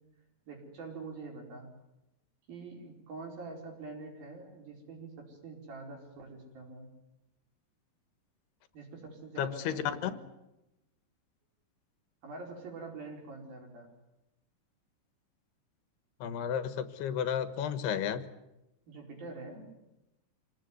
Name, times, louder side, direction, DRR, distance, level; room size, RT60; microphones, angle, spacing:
voice 1, 0.5-1.7 2.5-6.9 8.7-10.2 12.2-13.9 18.9-19.7, right 3 dB, 65° right, 1 dB, 6.5 m, -45 dB
voice 2, 9.4-10.1 16.2-18.3, left 8 dB, 90° left, 11 dB, 3.4 m, -32 dB
27.0 x 18.0 x 9.6 m, 0.95 s
omnidirectional pair, 4.5 m